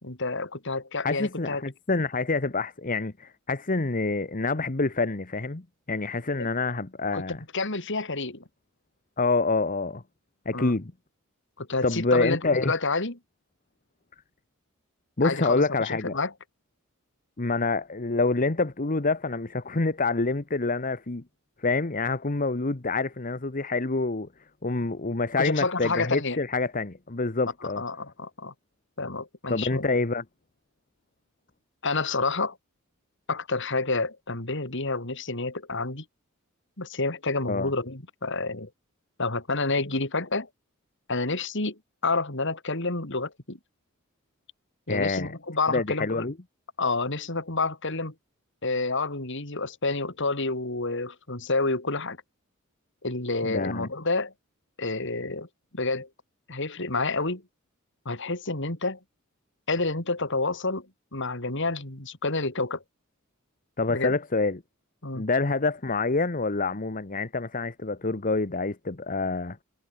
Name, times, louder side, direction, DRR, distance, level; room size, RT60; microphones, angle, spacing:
voice 1, 0.0-1.6 6.4-6.5 7.1-8.4 10.5-10.8 11.6-13.2 15.2-16.3 25.4-26.4 27.6-28.5 29.0-29.9 31.8-32.6 33.3-36.0 36.8-38.7 39.2-40.5 41.1-43.6 44.9-46.3 46.8-48.1 48.6-52.2 53.0-54.3 54.8-55.5 55.7-56.1 56.5-57.4 58.1-59.0 59.7-60.9 61.1-62.8 63.9-64.1 65.0-65.2, left 3 dB, 60° left, 4.0 m, -29 dB
voice 2, 1.0-7.4 9.2-10.0 10.4-10.9 11.8-12.7 15.2-16.2 17.4-21.2 21.6-24.3 24.6-27.8 29.5-30.2 37.5-37.7 44.9-45.3 45.7-46.3 53.4-53.9 63.8-64.6 65.1-69.6, left 3 dB, 40° left, 1.2 m, -27 dB
head